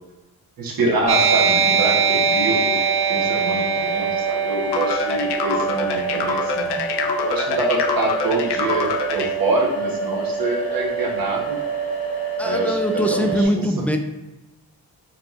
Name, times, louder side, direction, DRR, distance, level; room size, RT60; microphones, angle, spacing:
voice 1, 0.6-2.8 3.1-6.8 7.2-11.6 12.4-12.8 13.1-13.2, right 2 dB, 60° right, -1 dB, 1.2 m, -25 dB
sound 1, 1.0-13.4, right 5 dB, 65° left, 0.9 m, -27 dB
sound 2, 1.1-8.1, right 5 dB, 85° right, 0.7 m, -23 dB
sound 3, 4.7-9.3, left 6 dB, 85° left, 0.5 m, -26 dB
voice 2, 12.4-14.0, equal, 5° left, 5 dB, 0.3 m, -22 dB
5.5 x 2.8 x 2.5 m, 1.1 s
cardioid pair, 90°, 39 cm